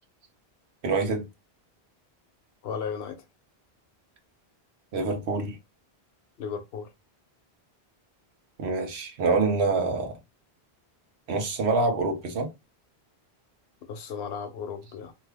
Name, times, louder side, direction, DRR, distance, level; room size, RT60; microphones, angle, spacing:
voice 1, 0.8-1.2 4.9-5.6 8.6-10.1 11.3-12.5, right 3 dB, 80° right, 1.1 m, -26 dB
voice 2, 2.6-3.2 6.4-6.9 13.9-15.1, left 6 dB, 75° left, 0.9 m, -35 dB
2.7 x 2.3 x 3.3 m
omnidirectional pair, 1.1 m